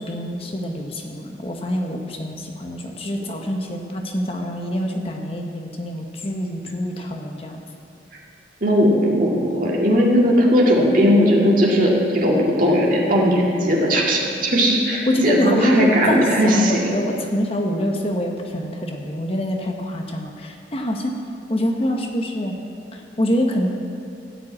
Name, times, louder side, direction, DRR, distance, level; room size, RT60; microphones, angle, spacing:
voice 1, 0.0-7.6 15.1-21.1 21.5-22.5 22.9-23.7, equal, 30° left, 2 dB, 0.9 m, -25 dB
voice 2, 8.6-16.9, equal, 45° right, -3 dB, 2.0 m, -18 dB
14.5 x 5.3 x 8.6 m, 2.5 s
head